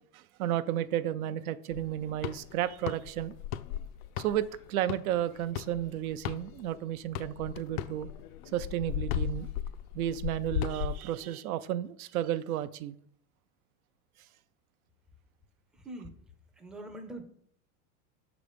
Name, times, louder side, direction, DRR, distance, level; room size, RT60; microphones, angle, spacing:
voice 1, 0.1-3.3 4.2-8.1 8.5-9.5 9.9-13.0, right 12 dB, 85° right, 0.6 m, -32 dB
sound 1, 1.7-6.8 7.1-11.0, left 11 dB, 70° left, 0.5 m, -36 dB
voice 2, 16.6-17.2, right 1 dB, ahead, 0.4 m, -42 dB
6.0 x 4.0 x 5.0 m
supercardioid pair, 130°, 42 cm